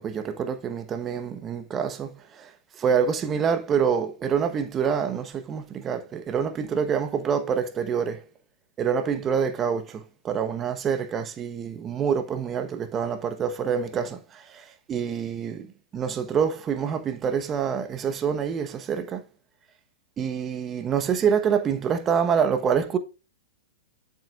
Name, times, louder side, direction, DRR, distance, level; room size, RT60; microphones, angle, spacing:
voice 1, 0.0-8.2 8.8-15.7 15.9-19.2 20.2-23.0, right 7 dB, 25° right, 1.2 m, -26 dB
7.7 x 7.6 x 2.5 m
hypercardioid pair, 115°, 0 cm